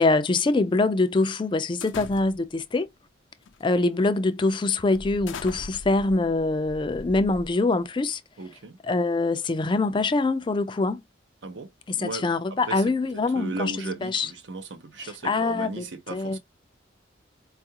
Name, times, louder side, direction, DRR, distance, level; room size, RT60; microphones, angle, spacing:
voice 1, 0.0-2.9 3.6-8.2 8.8-11.0 12.0-14.3 15.2-15.8 16.1-16.4, left 3 dB, 25° left, 0.3 m, -24 dB
sound 1, 1.8-2.6 3.4-3.7 4.1-4.3 4.9-7.8, left 4 dB, 90° left, 0.5 m, -41 dB
voice 2, 8.4-8.8 11.4-12.3 12.6-12.9 13.1-16.4, right 3 dB, 70° right, 0.7 m, -36 dB
4.5 x 2.4 x 2.8 m
head